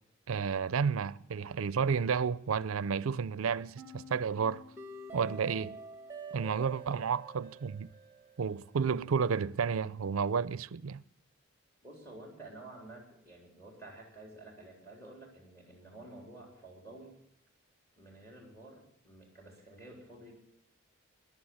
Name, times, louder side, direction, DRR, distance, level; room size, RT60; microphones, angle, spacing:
voice 1, 0.3-4.6 5.1-5.8 6.3-7.9 8.4-11.0, right 6 dB, 80° right, 0.5 m, -31 dB
sound 1, 3.8-8.8, right 3 dB, 10° right, 1.3 m, -47 dB
voice 2, 11.8-17.1 18.0-20.4, right 2 dB, 10° left, 3.6 m, -51 dB
14.5 x 11.0 x 7.1 m
head